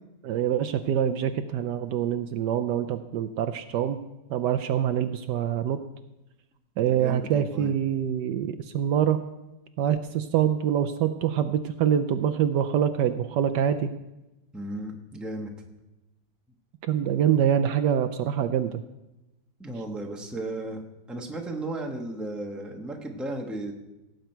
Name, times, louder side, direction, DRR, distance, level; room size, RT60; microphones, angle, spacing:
voice 1, 0.2-4.0 4.3-5.8 6.8-9.2 9.8-13.9 16.9-18.8, right 9 dB, 75° right, 10 dB, 1.1 m, -25 dB
voice 2, 6.9-7.7 14.5-15.5 19.6-20.8 21.1-23.7, right 1 dB, ahead, 1 dB, 1.0 m, -35 dB
17.5 x 8.0 x 4.5 m, 0.98 s
omnidirectional pair, 2.0 m